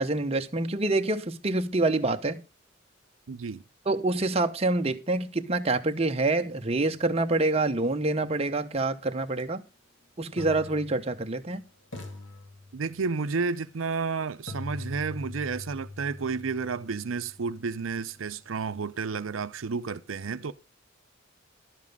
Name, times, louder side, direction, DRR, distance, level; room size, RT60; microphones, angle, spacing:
voice 1, 0.0-2.4 3.9-9.6 10.2-11.6, right 2 dB, 30° right, 0.9 m, -26 dB
voice 2, 3.3-3.6 12.7-20.5, right 5 dB, 80° right, 0.6 m, -31 dB
sound 1, 9.3-9.4 10.4-11.5 11.9-13.2 14.5-18.4, left 2 dB, 65° left, 2.5 m, -43 dB
11.5 x 7.4 x 5.4 m
head